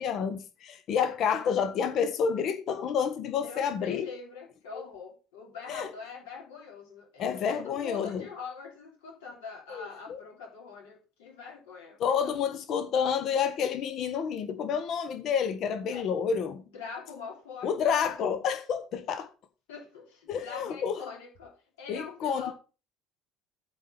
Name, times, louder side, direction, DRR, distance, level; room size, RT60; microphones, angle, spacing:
voice 1, 0.0-4.1 4.7-4.8 5.7-5.9 7.2-8.3 9.7-10.2 12.0-16.6 17.6-19.3 20.3-21.0 21.9-22.5, left 7 dB, 50° left, 1.1 m, -29 dB
voice 2, 3.4-12.5 15.9-16.0 16.7-17.7 19.7-22.5, left 5 dB, 65° left, 3.4 m, -43 dB
8.4 x 4.4 x 6.8 m
figure-of-eight pair, 60°, 0 cm